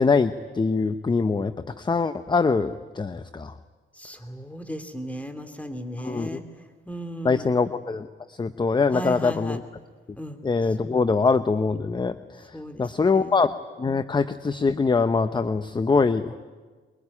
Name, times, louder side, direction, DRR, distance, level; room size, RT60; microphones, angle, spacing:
voice 1, 0.0-3.5 6.0-6.4 7.2-9.6 10.4-13.5 13.8-16.3, left 4 dB, 25° left, 12 dB, 0.8 m, -23 dB
voice 2, 3.9-6.4 6.9-7.5 8.9-9.6 10.2-10.4 12.5-13.4, equal, 5° left, 7 dB, 3.0 m, -36 dB
23.0 x 22.5 x 9.9 m, 1.5 s
cardioid pair, 90°, 20 cm